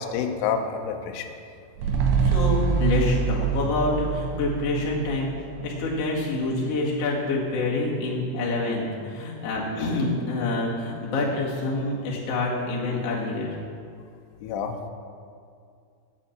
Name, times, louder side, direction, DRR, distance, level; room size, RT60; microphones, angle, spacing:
voice 1, 0.0-1.3 1.9-2.0 14.4-14.9, left 6 dB, 80° left, 4 dB, 2.7 m, -29 dB
sound 1, 1.8-6.3 6.6-6.7, right 6 dB, 75° right, 2.8 m, -25 dB
voice 2, 2.2-5.3 5.6-13.6, left 2 dB, 50° left, -5 dB, 1.9 m, -27 dB
9.0 x 8.6 x 7.2 m, 2.3 s
omnidirectional pair, 5.8 m